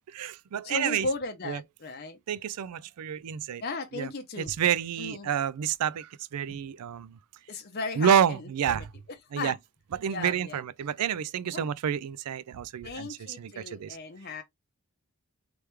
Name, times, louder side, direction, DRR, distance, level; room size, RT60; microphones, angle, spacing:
voice 1, 0.1-1.1 1.4-1.6 2.3-3.6 3.9-4.1 4.4-7.2 8.0-8.9 9.3-9.6 9.9-14.0, right 8 dB, 90° right, 0.4 m, -29 dB
voice 2, 0.6-2.2 3.6-4.5 5.0-5.3 6.5-6.6 7.5-8.4 8.7-8.8 9.4-9.5 10.1-10.6 11.5-11.7 12.8-14.4, left 3 dB, 45° left, 0.7 m, -36 dB
3.4 x 3.3 x 3.1 m
head